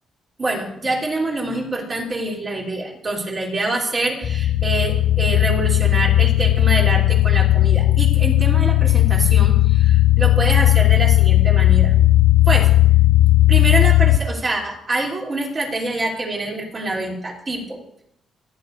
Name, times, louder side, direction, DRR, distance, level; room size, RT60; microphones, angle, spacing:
voice 1, 0.4-11.9 12.4-12.7 13.5-17.8, right 2 dB, 30° right, -2 dB, 3.2 m, -25 dB
sound 1, 4.2-14.2, left 15 dB, 45° left, 0.5 m, -15 dB
29.0 x 10.0 x 2.7 m, 0.75 s
cardioid pair, 150°, 0 cm